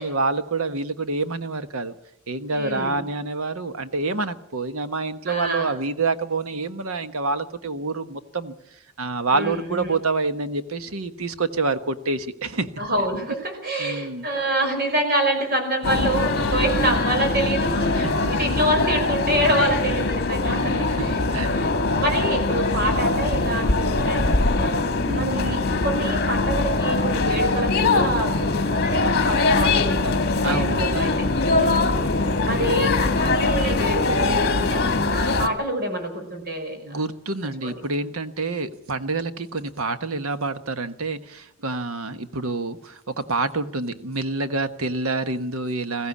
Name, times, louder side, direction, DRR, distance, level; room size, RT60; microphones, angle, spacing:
voice 1, 0.0-2.0 2.3-8.5 9.0-13.1 13.8-14.3 17.9-18.3 20.4-21.6 25.1-25.7 30.4-30.8 31.5-31.9 36.7-46.1, right 3 dB, 75° right, 11 dB, 1.3 m, -27 dB
voice 2, 2.5-3.0 5.3-5.7 9.3-9.9 12.8-21.2 21.5-24.9 25.1-25.6 25.8-31.3 31.6-31.8 32.4-37.0 37.6-37.8, right 1 dB, 45° right, 5 dB, 5.2 m, -27 dB
sound 1, 15.8-35.5, left 3 dB, 50° left, 1.8 m, -22 dB
21.0 x 15.5 x 8.5 m, 0.78 s
head